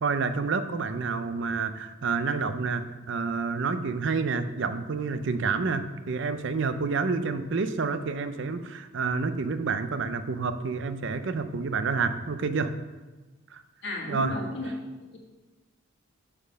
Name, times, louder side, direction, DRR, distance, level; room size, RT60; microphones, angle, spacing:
voice 1, 0.0-12.7 13.5-13.6 14.1-14.4, right 4 dB, 60° right, 10 dB, 0.5 m, -29 dB
voice 2, 13.8-14.7 15.1-15.2, left 1 dB, 55° left, -1 dB, 1.5 m, -33 dB
7.2 x 4.4 x 6.3 m, 1.2 s
head